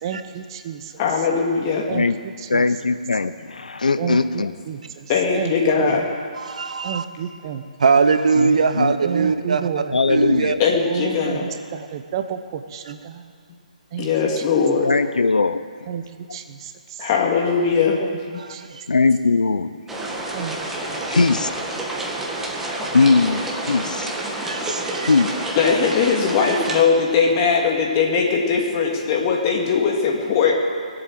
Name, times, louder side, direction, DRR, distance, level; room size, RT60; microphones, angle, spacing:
voice 1, 0.0-1.0 1.9-2.1 2.4-2.7 4.0-6.0 6.8-7.6 9.0-10.0 10.8-13.3 13.9-14.1 14.4-14.5 15.9-17.1 18.0-18.2 18.5-18.6 20.3-20.6 20.9-21.0, right 8 dB, 35° right, 8 dB, 1.0 m, -31 dB
voice 2, 1.0-1.9 5.1-6.0 10.6-11.4 14.0-14.9 17.0-18.0 18.3-18.4 25.5-30.5, left 5 dB, 35° left, 0 dB, 2.6 m, -20 dB
voice 3, 2.5-4.5 8.4-8.9 9.2-9.3 9.9-10.6 14.8-15.7 18.9-20.2 21.1-21.5 22.9-24.1 25.1-25.4, left 4 dB, 75° left, 12 dB, 0.7 m, -20 dB
voice 4, 6.4-7.0 7.8-9.6 10.1-10.5 18.4-18.8 22.2-22.3 22.6-23.0 24.5-25.1 26.4-26.6, right 5 dB, 65° right, 9 dB, 1.0 m, -21 dB
sound 1, 19.9-26.8, right 2 dB, 5° right, 1.7 m, -28 dB
21.0 x 8.0 x 7.7 m, 2.1 s
figure-of-eight pair, 140°, 4 cm